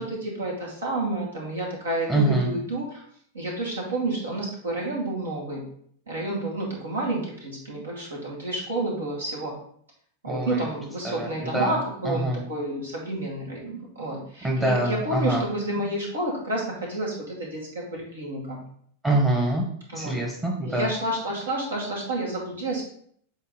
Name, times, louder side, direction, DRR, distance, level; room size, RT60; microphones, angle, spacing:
voice 1, 0.0-3.0 3.3-5.6 6.1-9.5 10.2-18.6 19.9-20.2 20.6-22.8, right 1 dB, 70° right, -2 dB, 2.3 m, -30 dB
voice 2, 2.1-2.5 10.2-10.7 11.0-11.8 12.0-12.4 14.4-15.4 19.0-19.6 19.9-20.9, right 1 dB, 15° right, -2 dB, 1.3 m, -25 dB
7.9 x 4.1 x 3.9 m, 0.63 s
figure-of-eight pair, 90°, 0 cm